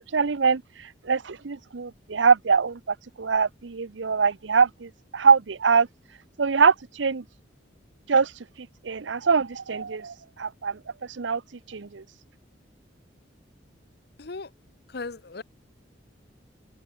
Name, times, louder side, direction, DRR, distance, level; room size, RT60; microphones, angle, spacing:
voice 1, 0.1-5.9 6.4-7.2 8.1-8.3 8.6-11.4 11.7-12.0, right 5 dB, 80° right, 0.7 m, -23 dB
voice 2, 14.2-14.5 14.9-15.4, left 3 dB, 60° left, 0.9 m, -36 dB
open air
head